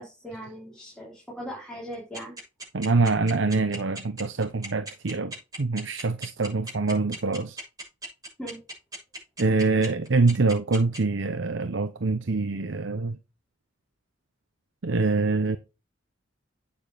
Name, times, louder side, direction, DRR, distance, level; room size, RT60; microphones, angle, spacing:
voice 1, 0.0-2.4 8.4-8.6, equal, 5° left, 3.8 m, -39 dB
sound 1, 1.9-11.0, right 1 dB, 20° right, 7.0 m, -37 dB
voice 2, 2.7-7.6 9.4-13.2 14.8-15.6, right 3 dB, 70° right, 0.7 m, -25 dB
9.2 x 7.0 x 5.0 m
head